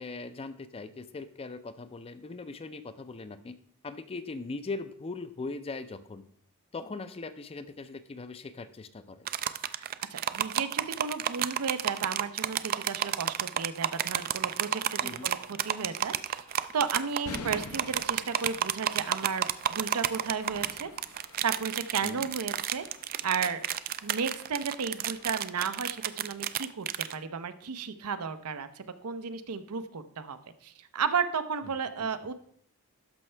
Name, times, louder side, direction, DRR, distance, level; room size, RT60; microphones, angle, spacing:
voice 1, 0.0-3.6 3.8-6.2 6.7-9.3 15.0-15.3 22.0-22.3 31.6-31.7 32.0-32.1, left 3 dB, 25° left, 12 dB, 0.4 m, -40 dB
sound 1, 9.3-27.1, right 11 dB, 40° right, 0.3 m, -31 dB
voice 2, 9.8-16.4 16.7-20.9 21.4-22.8 23.2-23.6 24.0-26.9 27.1-32.3, right 6 dB, 85° right, 10 dB, 0.6 m, -34 dB
sound 2, 15.0-26.4, left 3 dB, 75° left, 0.8 m, -49 dB
12.5 x 5.4 x 3.3 m, 0.63 s
head